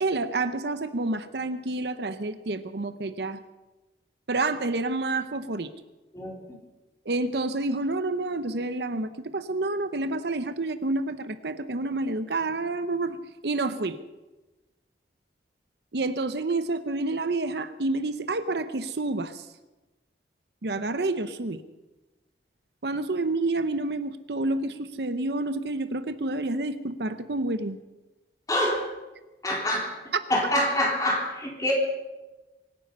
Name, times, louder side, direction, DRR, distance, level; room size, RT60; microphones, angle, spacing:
voice 1, 0.0-3.4 4.3-5.7 7.1-13.2 13.4-14.0 15.9-19.5 20.6-21.6 22.8-27.8, right 2 dB, 70° right, 11 dB, 0.8 m, -29 dB
voice 2, 28.5-28.9 29.4-29.9 30.3-31.7, left 1 dB, 20° left, -2 dB, 4.0 m, -25 dB
24.5 x 10.0 x 5.5 m, 1.1 s
head